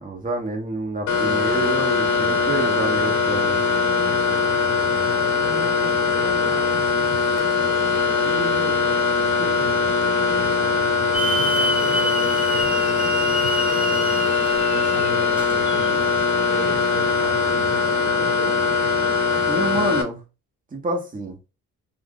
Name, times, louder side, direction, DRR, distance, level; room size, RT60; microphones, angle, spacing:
voice 1, 0.0-3.6 19.5-20.2 20.7-21.4, right 2 dB, 25° right, 1.1 m, -28 dB
sound 1, 1.1-20.0, left 4 dB, 75° left, 0.9 m, -21 dB
voice 2, 5.3-7.0 8.2-8.9 9.4-9.7 11.3-14.2 14.7-16.0 16.5-18.6, right 3 dB, 85° right, 1.1 m, -37 dB
Hiss / Alarm, 11.1-15.9, right 1 dB, 5° right, 0.4 m, -28 dB
2.5 x 2.4 x 3.6 m
cardioid pair, 90°, 30 cm